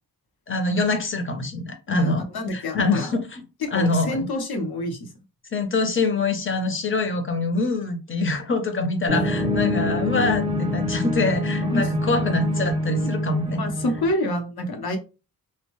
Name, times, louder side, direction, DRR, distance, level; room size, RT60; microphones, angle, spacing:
voice 1, 0.5-2.2 2.5-3.4 3.7-4.3 5.5-13.6, left 3 dB, 35° left, 6 dB, 0.6 m, -25 dB
voice 2, 1.9-3.1 3.6-5.1 11.7-11.9 12.9-13.1 13.5-15.0, left 1 dB, 75° left, 4 dB, 0.8 m, -27 dB
sound 1, 9.1-14.1, left 1 dB, 15° right, 0.5 m, -25 dB
2.6 x 2.1 x 3.0 m, 0.30 s
wide cardioid pair, 140°, 38 cm